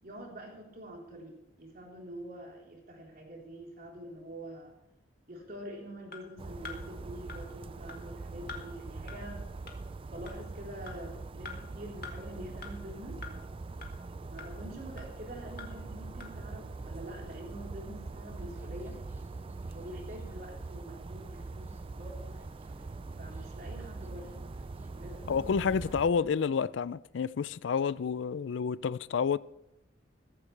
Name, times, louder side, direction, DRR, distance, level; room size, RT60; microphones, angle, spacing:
voice 1, 0.0-4.7 5.3-9.4 10.1-13.2 14.3-19.0 19.7-22.4 23.2-24.4 24.7-25.8, right 1 dB, 50° right, 3.8 m, -46 dB
sound 1, 6.1-6.2 6.6-6.8 7.3-7.4 7.9-8.0 8.5-8.6 9.1-9.2 9.7-9.8 10.3-10.4 10.9-11.0 11.4-11.6 12.0-12.1 12.6-12.7 13.2-13.3 13.8-13.9 14.4-14.5 15.0-15.1 15.6-15.7 16.2-16.3, left 5 dB, 50° left, 2.0 m, -43 dB
sound 2, 6.4-26.1, right 3 dB, 30° right, 0.4 m, -43 dB
sound 3, 16.7-26.3, equal, 10° right, 0.9 m, -57 dB
voice 2, 25.3-29.4, left 6 dB, 75° left, 0.4 m, -29 dB
15.0 x 14.5 x 3.3 m
head